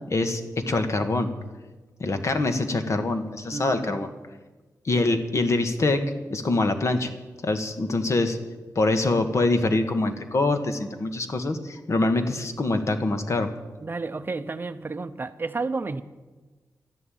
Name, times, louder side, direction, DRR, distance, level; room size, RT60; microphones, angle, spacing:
voice 1, 0.1-1.3 2.0-4.1 4.8-6.0 6.3-7.1 7.4-8.4 8.7-13.5, left 2 dB, 50° left, 7 dB, 1.5 m, -24 dB
voice 2, 3.5-4.1 13.8-16.0, right 3 dB, 35° right, 11 dB, 0.7 m, -31 dB
13.0 x 11.0 x 9.2 m, 1.2 s
wide cardioid pair, 125°, 6 cm